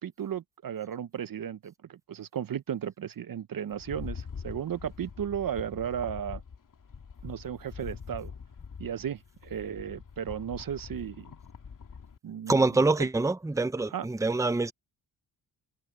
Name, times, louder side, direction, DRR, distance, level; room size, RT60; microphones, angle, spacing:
voice 1, 0.0-6.4 7.2-8.3 8.8-11.3 12.2-13.1 13.9-14.1, right 9 dB, 55° right, 0.7 m, -35 dB
Rattle, 3.7-12.2, left 6 dB, 50° left, 2.3 m, -44 dB
voice 2, 12.5-14.7, right 3 dB, 5° right, 0.7 m, -25 dB
cardioid pair, 95°, 42 cm